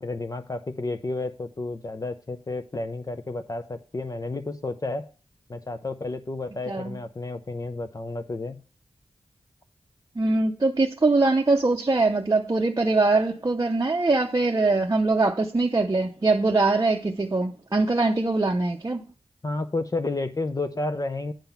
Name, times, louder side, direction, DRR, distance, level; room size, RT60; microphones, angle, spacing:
voice 1, 0.0-5.1 5.5-8.6 19.4-21.3, left 2 dB, 35° left, 0.6 m, -31 dB
voice 2, 6.7-7.0 10.2-19.0, right 3 dB, 30° right, 0.7 m, -22 dB
8.9 x 3.9 x 7.0 m
wide cardioid pair, 75°, 11 cm